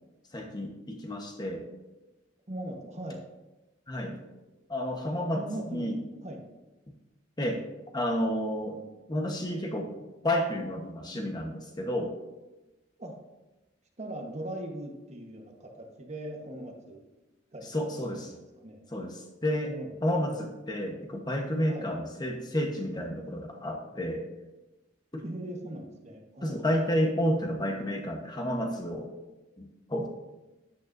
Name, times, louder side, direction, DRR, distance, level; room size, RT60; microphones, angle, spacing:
voice 1, 0.3-1.7 3.9-4.2 4.7-5.4 5.7-6.0 7.4-7.6 7.9-8.8 9.1-9.9 10.2-12.1 17.7-18.3 18.9-19.7 20.0-24.2 25.1-25.2 26.4-29.1 29.6-29.7 29.9-30.1, equal, 20° left, 2 dB, 1.0 m, -30 dB
voice 2, 2.5-3.2 5.3-5.9 6.2-6.4 11.1-11.3 13.0-13.2 14.0-17.0 17.5-18.8 19.6-20.4 21.7-21.9 25.2-26.6, right 1 dB, 40° right, 2 dB, 1.1 m, -40 dB
13.0 x 9.1 x 2.6 m, 1.1 s
head